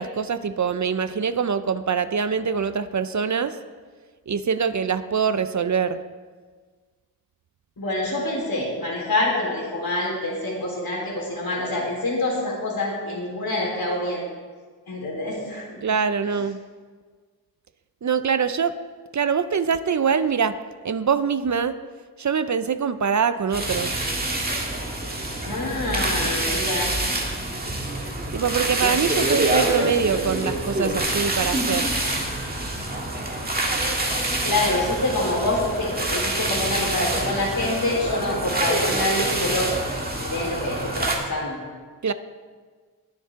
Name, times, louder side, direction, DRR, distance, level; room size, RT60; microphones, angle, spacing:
voice 1, 0.0-3.6 4.3-6.0 15.8-16.6 18.0-18.8 19.1-20.6 20.8-21.8 22.2-24.0 28.3-31.9 42.0-42.1, right 6 dB, 50° right, 12 dB, 0.5 m, -24 dB
voice 2, 7.8-14.2 14.9-15.8 25.4-26.9 34.4-39.7 40.1-41.6, left 2 dB, 65° left, -4 dB, 4.0 m, -26 dB
sound 1, 23.5-41.1, right 1 dB, 25° right, 1.8 m, -26 dB
21.5 x 7.2 x 3.6 m, 1.5 s
wide cardioid pair, 115°, 38 cm